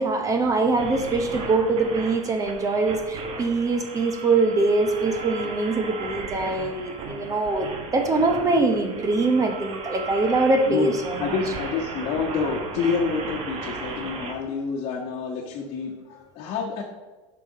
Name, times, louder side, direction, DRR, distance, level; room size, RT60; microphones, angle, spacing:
voice 1, 0.0-11.4, right 3 dB, 20° right, 5 dB, 0.8 m, -23 dB
sound 1, 0.8-14.3, right 4 dB, 40° right, 1.2 m, -36 dB
voice 2, 10.7-16.8, left 5 dB, 45° left, -2 dB, 1.2 m, -28 dB
9.0 x 5.8 x 4.1 m, 1.2 s
supercardioid pair, 135°, 15 cm